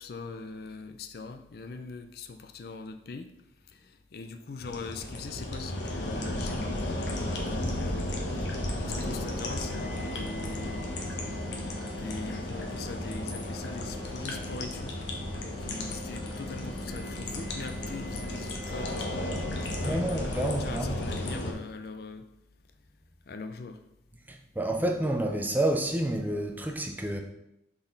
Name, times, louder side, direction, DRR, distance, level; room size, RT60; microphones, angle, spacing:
voice 1, 0.0-3.3 3.7-8.1 8.4-8.5 8.8-10.9 11.9-15.0 15.3-19.2 19.6-22.3 23.3-23.8, left 4 dB, 55° left, 0.4 m, -41 dB
sound 1, 4.6-21.5, left 1 dB, 80° left, 1.0 m, -34 dB
sound 2, 8.9-20.2, left 1 dB, 25° left, 0.9 m, -44 dB
voice 2, 19.8-21.0 24.3-27.2, right 1 dB, 10° right, 0.4 m, -29 dB
5.8 x 4.2 x 3.9 m
head